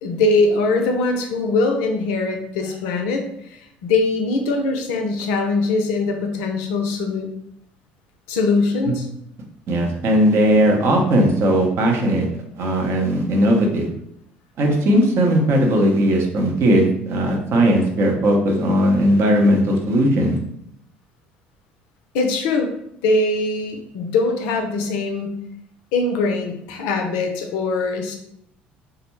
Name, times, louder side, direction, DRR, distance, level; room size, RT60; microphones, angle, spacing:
voice 1, 0.0-7.3 8.3-9.1 22.1-22.7 23.0-25.4 25.9-28.2, left 3 dB, 70° left, 4 dB, 0.4 m, -22 dB
voice 2, 9.7-12.3 12.6-13.9 14.6-20.4, equal, 50° right, 1 dB, 0.6 m, -18 dB
2.3 x 2.0 x 3.0 m, 0.73 s
hypercardioid pair, 60°, 5 cm